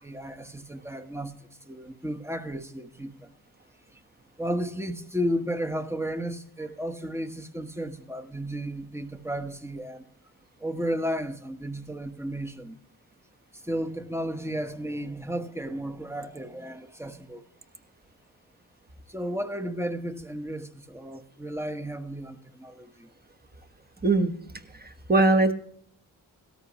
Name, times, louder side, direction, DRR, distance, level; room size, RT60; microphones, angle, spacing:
voice 1, 0.0-3.3 4.4-10.0 10.6-12.8 13.5-17.5 19.1-23.1, equal, 5° right, 1.1 m, -33 dB
voice 2, 24.0-24.3 24.8-25.5, right 2 dB, 25° right, 1.3 m, -21 dB
17.0 x 13.5 x 3.0 m
cardioid pair, 55°, 41 cm